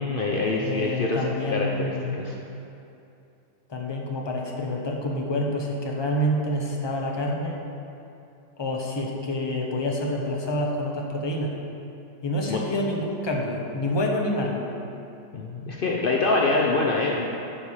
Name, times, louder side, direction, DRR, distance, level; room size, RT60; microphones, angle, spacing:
voice 1, 0.0-1.2 1.5-1.9 2.2-2.4 12.5-12.6 15.3-17.3, left 3 dB, 70° left, -2 dB, 0.5 m, -25 dB
voice 2, 0.6-2.2 3.7-7.6 8.6-11.5 12.2-14.6, left 1 dB, 20° left, -1 dB, 0.7 m, -27 dB
10.0 x 5.0 x 7.2 m, 2.7 s
omnidirectional pair, 2.0 m